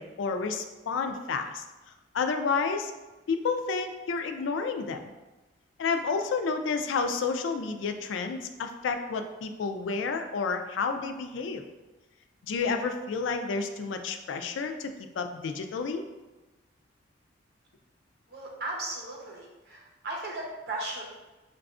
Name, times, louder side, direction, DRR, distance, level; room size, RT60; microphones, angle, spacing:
voice 1, 0.0-1.6 2.1-2.9 3.3-5.1 5.8-11.6 12.4-16.0, left 4 dB, 90° left, 7 dB, 0.3 m, -30 dB
voice 2, 18.3-21.0, right 2 dB, 60° right, -2 dB, 0.8 m, -36 dB
4.7 x 2.3 x 2.4 m, 1.1 s
head